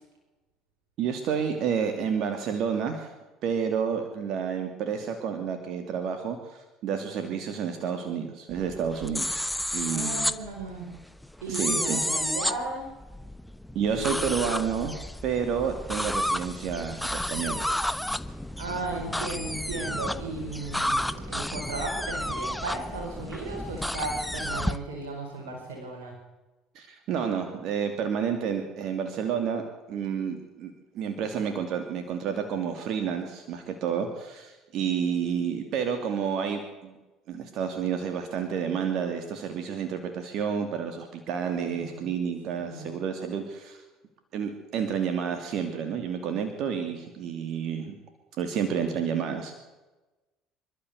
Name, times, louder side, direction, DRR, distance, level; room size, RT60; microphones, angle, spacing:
voice 1, 1.0-3.1 3.4-9.4 9.7-10.3 11.5-12.1 13.7-17.7 26.7-36.9 37.3-43.8 44.3-47.9 48.4-49.6, right 7 dB, 60° right, 6 dB, 2.7 m, -30 dB
sound 1, 8.5-24.8, left 1 dB, 5° left, 1.2 m, -31 dB
voice 2, 9.9-10.9 11.4-12.9 13.9-14.5 18.6-26.1 41.6-42.1 42.5-42.9, right 2 dB, 80° right, 0 dB, 4.9 m, -35 dB
26.5 x 13.0 x 8.1 m, 1.1 s
hypercardioid pair, 70°, 0 cm